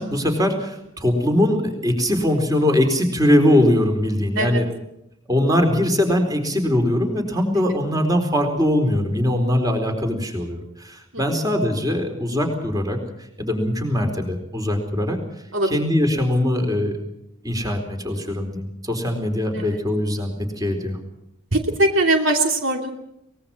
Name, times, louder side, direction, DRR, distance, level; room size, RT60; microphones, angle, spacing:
voice 1, 0.0-4.7 5.3-13.0 13.4-15.2 15.7-17.0 17.4-21.0, left 1 dB, 20° right, 4 dB, 4.2 m, -21 dB
voice 2, 21.5-22.9, right 2 dB, 65° right, 3 dB, 2.9 m, -21 dB
24.0 x 20.5 x 5.9 m, 0.82 s
head